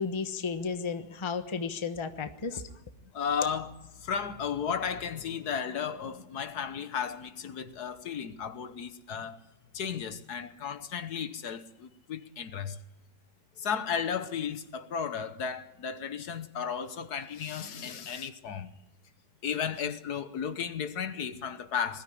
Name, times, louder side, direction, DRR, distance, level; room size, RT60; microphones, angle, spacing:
voice 1, 0.0-2.7, left 5 dB, 20° left, 1.0 m, -33 dB
voice 2, 3.1-9.4 9.7-12.8 13.6-18.7 19.4-22.0, left 7 dB, 65° left, 1.6 m, -34 dB
20.5 x 13.5 x 10.0 m
omnidirectional pair, 1.8 m